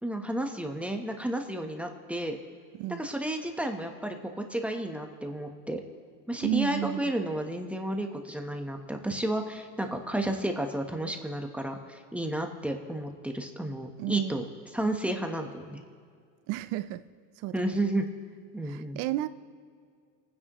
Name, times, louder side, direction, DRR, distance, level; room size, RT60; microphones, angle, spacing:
voice 1, 0.0-2.4 3.0-5.8 6.3-14.4 14.7-15.8 17.5-18.1 18.5-19.0, right 1 dB, 5° right, 3 dB, 1.0 m, -32 dB
voice 2, 6.4-7.1 14.0-14.4 16.5-17.0 17.4-17.8 18.7-19.3, right 15 dB, 75° right, 15 dB, 0.6 m, -32 dB
28.0 x 10.0 x 3.0 m, 2.1 s
cardioid pair, 125°, 33 cm